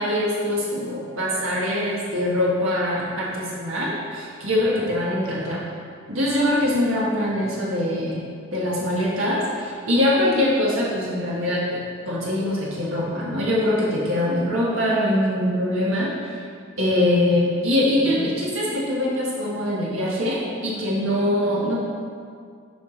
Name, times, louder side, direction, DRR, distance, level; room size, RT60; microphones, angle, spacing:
voice 1, 0.0-5.6 6.1-8.2 8.5-11.8 12.0-16.4 16.8-21.8, left 1 dB, 80° right, -6 dB, 1.5 m, -23 dB
8.0 x 4.6 x 5.0 m, 2.1 s
head